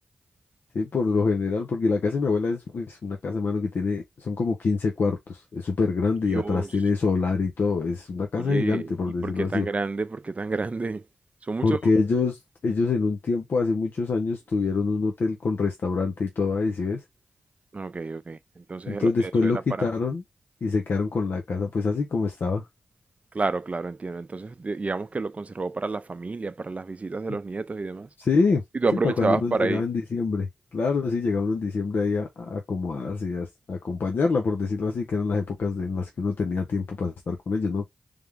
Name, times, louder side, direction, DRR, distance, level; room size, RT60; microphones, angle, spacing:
voice 1, 0.7-9.7 11.6-17.0 18.9-20.2 20.6-22.6 27.3-27.4 28.2-28.6 29.0-37.8, left 4 dB, 70° left, 0.8 m, -25 dB
voice 2, 6.3-6.7 8.4-8.9 9.2-11.0 11.4-11.8 17.7-19.9 23.3-28.1 28.7-29.8, right 3 dB, 40° right, 0.5 m, -29 dB
3.4 x 3.4 x 3.5 m
cardioid pair, 45°, 4 cm